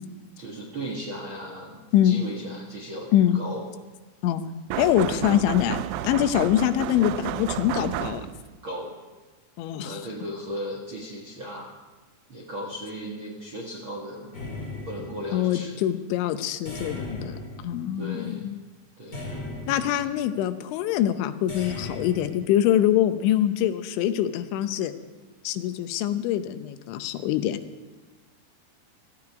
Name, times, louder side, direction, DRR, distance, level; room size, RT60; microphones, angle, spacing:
voice 1, 0.4-3.7 8.6-8.9 9.8-11.7 12.3-14.3 14.8-15.8 17.9-18.5 19.0-19.2, equal, 65° right, -1 dB, 1.2 m, -36 dB
sound 1, 4.7-8.6, right 13 dB, 80° right, 2.7 m, -32 dB
voice 2, 4.8-8.3 9.6-10.0 15.3-17.4 17.6-18.6 19.7-24.9 25.4-27.6, left 11 dB, 90° left, 10 dB, 3.2 m, -24 dB
sound 2, 14.3-15.6 16.7-18.3 19.1-20.3 21.5-22.3, left 2 dB, 25° left, 4.1 m, -37 dB
17.0 x 14.0 x 4.8 m, 1.3 s
omnidirectional pair, 5.2 m